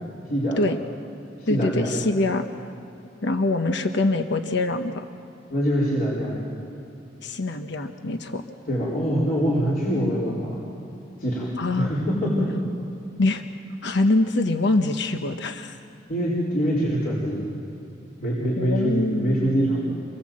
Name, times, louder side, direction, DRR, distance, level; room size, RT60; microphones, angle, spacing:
voice 1, 0.3-0.6 1.4-1.9 5.5-6.4 8.7-10.6 11.2-12.5 16.1-17.4 18.2-20.0, equal, 50° left, -6 dB, 4.5 m, -24 dB
voice 2, 1.5-2.5 3.2-5.1 7.2-8.4 11.6-11.9 13.2-13.4 13.8-15.8 18.6-20.0, left 2 dB, 65° left, 7 dB, 1.1 m, -24 dB
27.0 x 22.0 x 7.7 m, 2.7 s
head